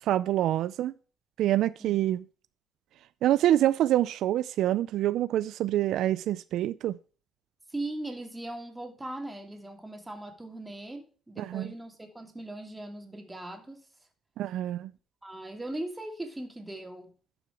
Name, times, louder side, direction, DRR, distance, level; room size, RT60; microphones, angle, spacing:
voice 1, 0.1-0.9 1.4-2.2 3.2-7.0 11.4-11.7 14.4-14.9, right 13 dB, 80° right, 0.4 m, -26 dB
voice 2, 7.7-13.9 15.2-17.1, right 1 dB, 15° right, 2.6 m, -39 dB
11.5 x 6.1 x 4.8 m
cardioid pair, 90°, 0 cm